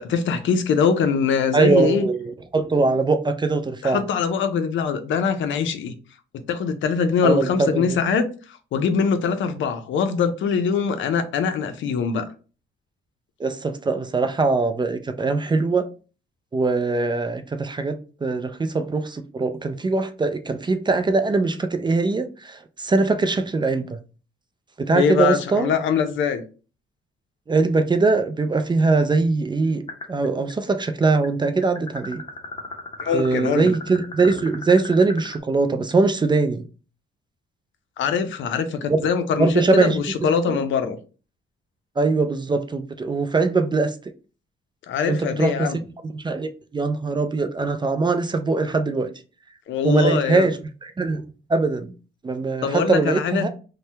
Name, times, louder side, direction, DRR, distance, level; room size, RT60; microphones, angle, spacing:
voice 1, 0.0-2.1 3.8-5.9 6.5-12.3 24.9-26.4 33.0-33.7 38.0-41.0 44.9-45.8 49.7-50.5 52.6-53.5, left 6 dB, 70° left, 0.5 m, -23 dB
voice 2, 1.5-4.0 7.2-8.0 13.4-15.9 16.5-24.0 24.8-25.7 27.5-29.8 30.1-32.2 33.1-36.6 38.9-39.0 39.4-40.0 40.5-40.6 42.0-43.9 45.1-45.7 46.1-49.1 49.8-51.2 51.5-51.9 52.2-53.5, right 3 dB, 20° right, 0.4 m, -21 dB
sound 1, 29.9-30.5 30.8-35.4, left 2 dB, 25° left, 0.9 m, -36 dB
2.7 x 2.1 x 3.2 m
cardioid pair, 80°, 21 cm